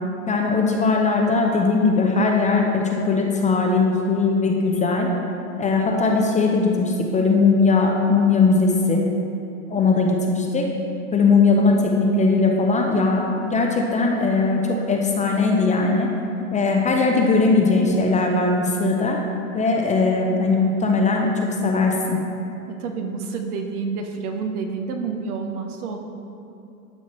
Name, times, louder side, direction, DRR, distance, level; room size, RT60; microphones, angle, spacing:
voice 1, 0.3-5.1 5.6-9.0 9.7-10.7 11.1-16.1 16.5-19.2 19.5-22.2, left 3 dB, 15° left, 1 dB, 0.5 m, -19 dB
voice 2, 22.7-26.0, right 5 dB, 70° right, 4 dB, 1.1 m, -29 dB
12.0 x 5.6 x 3.1 m, 2.7 s
hypercardioid pair, 105°, 45 cm